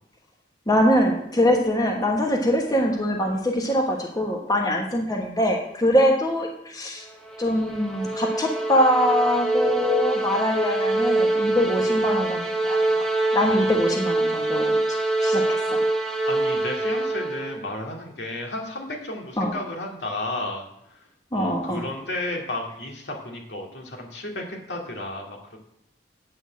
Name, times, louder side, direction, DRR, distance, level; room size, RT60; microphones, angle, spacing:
voice 1, 0.7-7.1 7.4-12.8 13.3-14.8 15.2-15.8 19.4-19.5 21.3-21.9, left 1 dB, 20° left, 1 dB, 1.3 m, -23 dB
sound 1, 7.1-17.6, right 2 dB, 5° left, 1.2 m, -24 dB
voice 2, 16.3-20.6 20.9-21.1 21.3-25.6, left 2 dB, 75° left, 1 dB, 2.4 m, -33 dB
8.9 x 6.4 x 7.5 m, 0.76 s
head